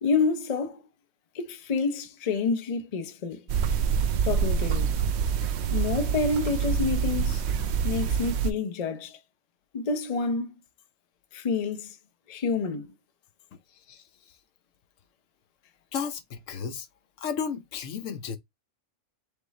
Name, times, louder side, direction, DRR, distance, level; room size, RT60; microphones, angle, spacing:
voice 1, 0.0-0.8 1.3-3.4 4.2-5.0 5.7-7.4 7.8-9.2 9.7-10.5 11.3-12.0 12.3-12.9, left 4 dB, 45° left, 0.5 m, -28 dB
sound 1, 3.5-8.5, right 7 dB, 65° right, 0.8 m, -26 dB
voice 2, 15.9-16.9 17.2-18.4, left 6 dB, 70° left, 1.0 m, -33 dB
3.6 x 3.5 x 4.0 m
omnidirectional pair, 1.4 m